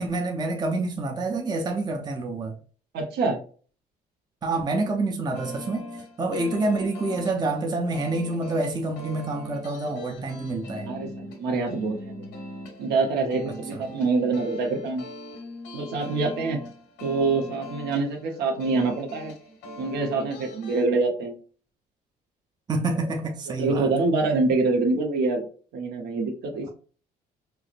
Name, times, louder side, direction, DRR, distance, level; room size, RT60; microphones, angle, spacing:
voice 1, 0.0-2.6 4.4-5.8 6.2-10.9 13.5-13.8 22.7-23.9, right 2 dB, 25° right, 0.6 m, -27 dB
voice 2, 2.9-3.4 10.8-12.1 12.8-15.0 15.7-16.6 17.0-19.3 19.8-21.3 23.6-25.5 25.7-26.7, right 3 dB, 75° right, 1.0 m, -25 dB
sound 1, 5.3-20.8, left 1 dB, 80° left, 1.1 m, -41 dB
4.5 x 2.0 x 2.5 m
cardioid pair, 110°, 17 cm